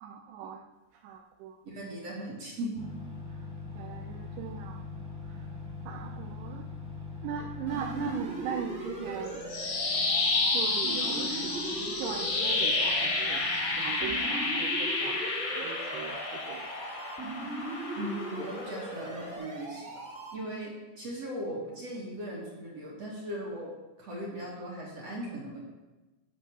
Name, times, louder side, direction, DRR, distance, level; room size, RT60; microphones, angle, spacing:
voice 1, 0.0-0.6 1.0-1.5 3.8-4.8 5.9-6.6 7.2-9.4 9.9-10.1 10.5-16.7, right 8 dB, 80° right, 3 dB, 2.4 m, -39 dB
voice 2, 1.6-2.8 18.0-19.9 20.3-23.7 24.0-25.6, right 1 dB, 50° right, -3 dB, 2.1 m, -38 dB
sound 1, 2.7-13.9, left 3 dB, 5° right, 0.7 m, -43 dB
sound 2, 7.7-20.3, right 1 dB, 35° right, 1.1 m, -39 dB
sound 3, 9.3-19.3, left 3 dB, 85° left, 1.0 m, -31 dB
13.0 x 4.9 x 6.1 m, 1.1 s
omnidirectional pair, 5.0 m